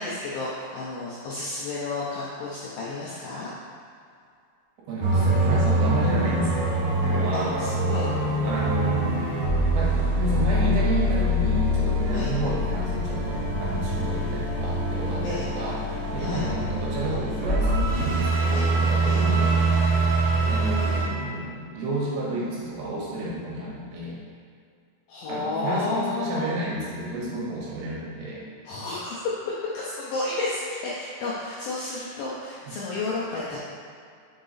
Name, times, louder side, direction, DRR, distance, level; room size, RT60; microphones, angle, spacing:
voice 1, 0.0-3.5 7.3-8.1 12.1-12.3 15.2-15.5 16.2-16.5 18.5-18.7 19.1-19.2 25.1-26.5 28.7-33.6, left 3 dB, 80° left, -6 dB, 2.1 m, -31 dB
voice 2, 4.9-6.6 7.0-7.6 8.4-9.4 9.7-19.6 20.4-24.2 25.3-28.4 32.7-32.8, right 1 dB, 85° right, -6 dB, 3.4 m, -31 dB
sound 1, 5.0-21.0, right 1 dB, 65° right, 2.3 m, -24 dB
6.6 x 4.0 x 3.9 m, 2.3 s
omnidirectional pair, 5.0 m